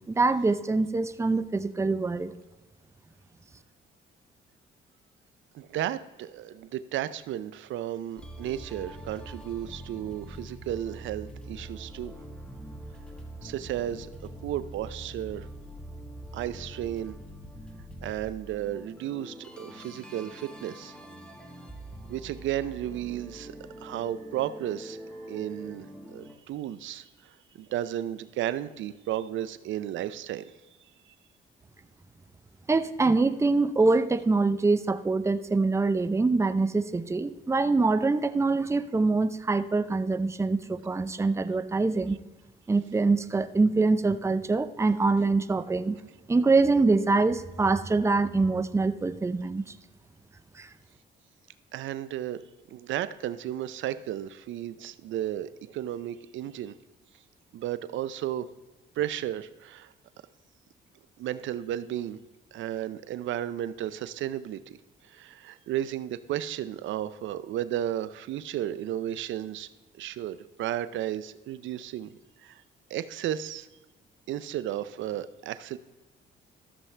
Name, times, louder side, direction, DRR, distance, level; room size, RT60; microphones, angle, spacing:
voice 1, 0.1-2.3 32.7-42.2 42.7-46.0 46.3-49.6 50.6-50.7, right 3 dB, 15° right, 11 dB, 0.5 m, -24 dB
voice 2, 5.5-12.1 13.4-15.5 16.3-17.1 18.0-21.0 22.1-23.6 23.8-25.0 25.3-30.5 51.7-52.4 52.7-56.7 57.5-58.5 59.0-59.9 61.2-62.2 62.5-64.8 65.0-69.7 69.9-72.6 72.9-73.7 74.3-75.8, right 12 dB, 75° right, 14 dB, 0.5 m, -33 dB
sound 1, 8.2-26.3, right 1 dB, 5° left, 1.4 m, -44 dB
13.5 x 7.1 x 3.3 m, 1.1 s
cardioid pair, 90°, 20 cm